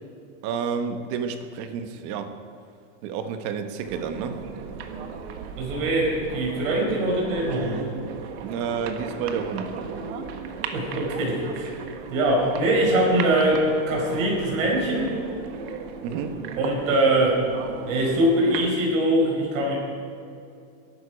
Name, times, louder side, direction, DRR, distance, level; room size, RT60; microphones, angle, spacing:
voice 1, 0.4-2.3 3.0-4.4 8.4-9.8 16.0-16.4, right 6 dB, 35° right, 8 dB, 1.1 m, -30 dB
sound 1, 3.8-18.7, right 6 dB, 50° right, 1.4 m, -36 dB
voice 2, 5.6-7.8 10.7-11.7 12.1-15.1 16.5-17.5 17.8-19.7, right 1 dB, 70° right, -2 dB, 4.9 m, -22 dB
21.0 x 11.5 x 5.1 m, 2.5 s
supercardioid pair, 170°, 40 cm